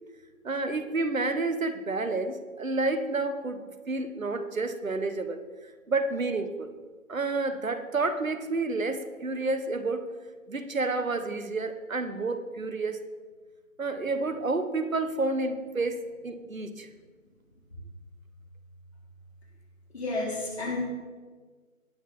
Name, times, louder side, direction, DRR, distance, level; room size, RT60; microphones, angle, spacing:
voice 1, 0.4-6.7 7.1-10.1 10.5-13.0 13.8-16.9, right 3 dB, 70° right, 10 dB, 1.1 m, -30 dB
voice 2, 19.9-20.8, left 2 dB, 50° left, -4 dB, 4.1 m, -31 dB
18.5 x 6.2 x 4.2 m, 1.4 s
figure-of-eight pair, 160°, 41 cm